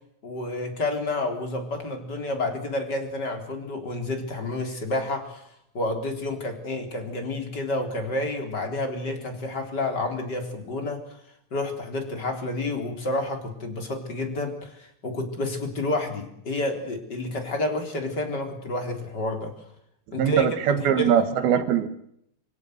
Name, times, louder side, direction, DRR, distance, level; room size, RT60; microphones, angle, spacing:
voice 1, 0.2-5.5 5.7-11.0 11.5-19.5 20.1-21.1, left 2 dB, 25° left, 6 dB, 3.6 m, -29 dB
voice 2, 20.2-21.9, right 8 dB, 65° right, 10 dB, 3.1 m, -21 dB
26.0 x 16.5 x 8.0 m, 0.71 s
omnidirectional pair, 5.2 m